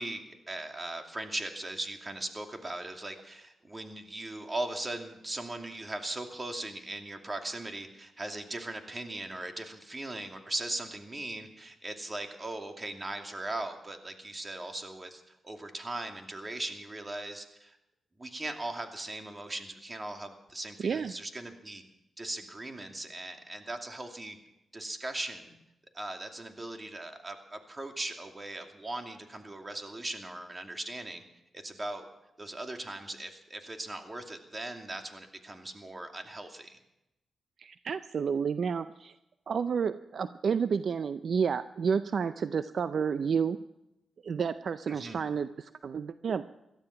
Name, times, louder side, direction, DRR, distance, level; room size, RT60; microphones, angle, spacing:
voice 1, 0.0-17.8 18.2-21.8 22.2-24.4 24.7-25.6 25.9-31.2 31.5-32.0 32.4-36.8 44.9-45.2, right 2 dB, 30° right, 4 dB, 2.5 m, -39 dB
voice 2, 20.8-21.1 37.6-39.1 39.5-43.6 44.2-46.4, right 6 dB, 65° right, 12 dB, 0.5 m, -30 dB
17.5 x 13.0 x 5.8 m, 0.90 s
cardioid pair, 55°, 0 cm